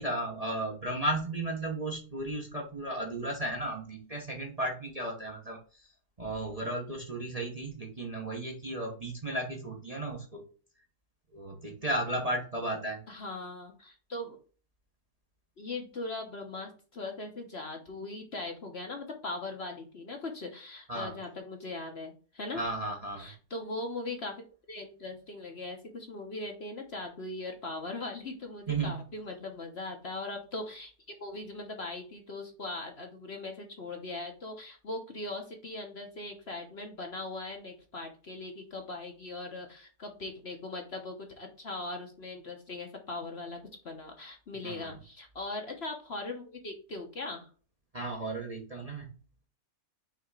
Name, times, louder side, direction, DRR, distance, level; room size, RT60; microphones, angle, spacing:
voice 1, 0.0-5.9 6.2-10.4 11.3-13.0 20.9-21.2 22.5-23.3 28.7-29.0 44.6-44.9 47.9-49.1, right 1 dB, 25° right, 0 dB, 1.0 m, -34 dB
voice 2, 13.1-14.4 15.6-22.7 23.2-47.5, left 2 dB, 45° left, 3 dB, 1.2 m, -40 dB
5.8 x 3.5 x 4.8 m, 0.38 s
omnidirectional pair, 1.7 m